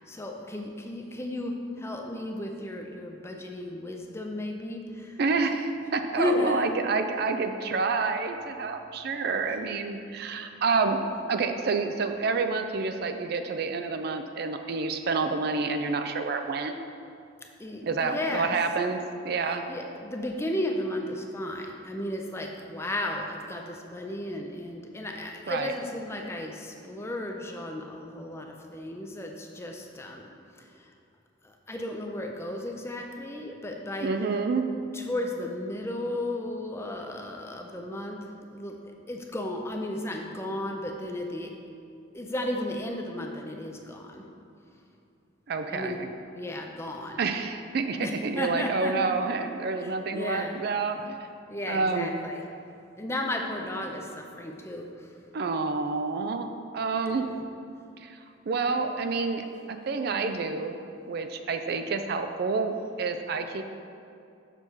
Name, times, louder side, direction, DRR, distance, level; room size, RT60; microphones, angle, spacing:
voice 1, 0.1-5.6 6.2-6.7 9.0-9.1 9.4-9.6 17.6-18.7 19.4-30.9 31.4-34.4 34.9-38.2 38.5-41.5 42.1-44.3 45.7-46.0 46.3-47.3 48.0-49.1 49.7-50.6 51.5-52.5 53.0-55.2 57.1-57.4, left 1 dB, 15° left, 2 dB, 0.5 m, -34 dB
voice 2, 5.2-11.0 11.3-16.7 17.8-19.6 25.5-25.7 34.0-34.6 45.5-45.9 47.2-51.2 51.7-52.1 55.3-57.3 58.0-58.2 58.5-60.8 61.1-63.6, right 4 dB, 55° right, 7 dB, 0.4 m, -28 dB
6.7 x 5.5 x 4.5 m, 2.5 s
head